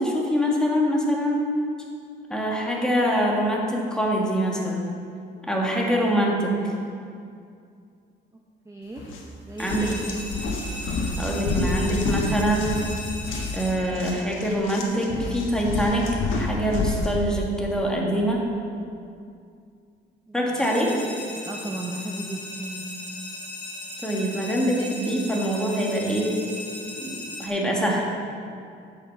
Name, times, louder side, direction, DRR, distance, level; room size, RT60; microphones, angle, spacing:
voice 1, 0.0-1.5 2.3-4.9 5.4-6.7 9.6-10.2 11.2-12.8 13.5-18.4 20.3-21.0 24.0-26.3 27.0-27.1 27.4-28.1, equal, 5° left, -2 dB, 1.9 m, -24 dB
voice 2, 8.7-9.0 9.4-10.0 20.3-20.4 21.3-22.9, right 1 dB, 15° right, -1 dB, 0.9 m, -35 dB
sound 1, 9.0-9.2 9.6-17.1, left 2 dB, 80° left, 1.3 m, -29 dB
sound 2, 9.6-14.5 20.5-27.5, left 1 dB, 20° left, 1.7 m, -38 dB
8.4 x 6.1 x 6.6 m, 2.4 s
cardioid pair, 90°, 20 cm